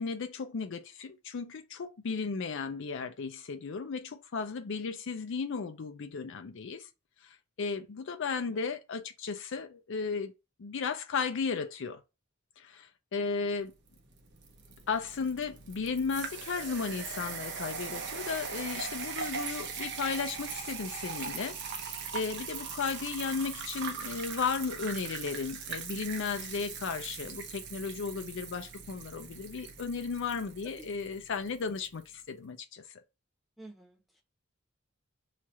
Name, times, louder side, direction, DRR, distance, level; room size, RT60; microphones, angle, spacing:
voice 1, 0.0-6.9 7.2-10.3 10.6-12.0 12.6-13.7 14.9-32.8, left 5 dB, 60° left, 0.5 m, -35 dB
sound 1, 13.9-31.9, right 6 dB, 55° right, 0.7 m, -40 dB
voice 2, 33.6-34.2, right 2 dB, ahead, 0.8 m, -51 dB
3.2 x 2.4 x 4.2 m
head